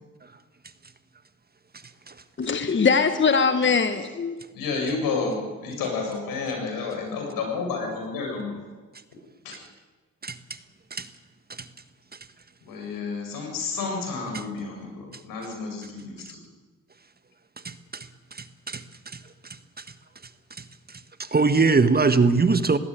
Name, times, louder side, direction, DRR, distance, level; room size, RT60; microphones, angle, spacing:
voice 1, 2.4-4.4, left 5 dB, 35° left, 1.5 m, -21 dB
voice 2, 4.5-8.6 9.4-9.6 12.6-16.4, left 4 dB, 80° left, 7.7 m, -30 dB
voice 3, 17.6-18.8 19.1-19.2 21.2-22.8, right 4 dB, 30° right, 1.5 m, -22 dB
19.5 x 17.0 x 9.4 m
supercardioid pair, 70°, 34 cm